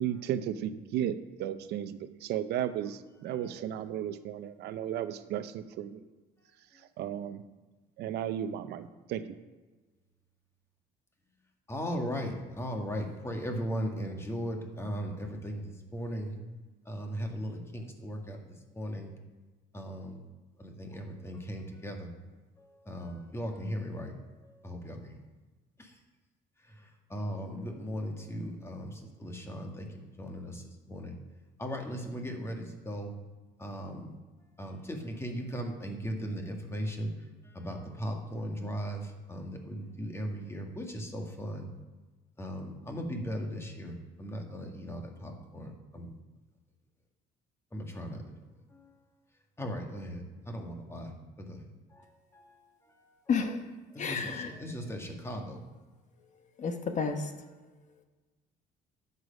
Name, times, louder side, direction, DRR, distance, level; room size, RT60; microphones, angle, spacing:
voice 1, 0.0-6.0 7.0-7.4 8.0-9.2, right 10 dB, 80° right, 0.7 m, -34 dB
voice 2, 11.7-16.3 16.9-18.4 18.8-19.1 19.7-20.2 20.6-22.1 22.9-24.1 24.6-25.2 27.1-28.9 29.2-29.9 30.2-30.6 30.9-31.1 31.6-33.1 33.6-34.1 34.6-37.1 37.6-39.0 39.3-41.7 42.4-46.1 47.7-48.2 49.6-51.1 51.5-51.6 54.0-55.6, equal, 15° left, 1.7 m, -37 dB
voice 3, 53.3-53.6 54.0-54.5 56.6-57.2, left 5 dB, 45° left, 1.2 m, -30 dB
11.0 x 6.9 x 5.2 m
cardioid pair, 110°, 17 cm